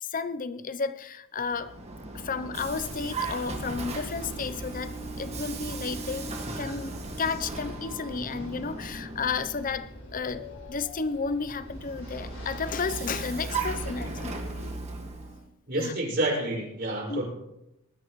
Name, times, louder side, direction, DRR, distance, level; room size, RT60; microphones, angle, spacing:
voice 1, 0.0-1.8 2.1-14.5 15.7-15.9 17.1-17.2, left 5 dB, 40° left, 14 dB, 0.7 m, -32 dB
Vehicle, 1.4-9.9 11.6-15.5, right 3 dB, 30° right, 1.8 m, -37 dB
sound 1, 2.5-14.7, left 1 dB, 60° left, 4.4 m, -45 dB
voice 2, 15.7-17.2, right 1 dB, 50° right, -4 dB, 5.6 m, -28 dB
19.5 x 13.0 x 3.1 m, 0.86 s
head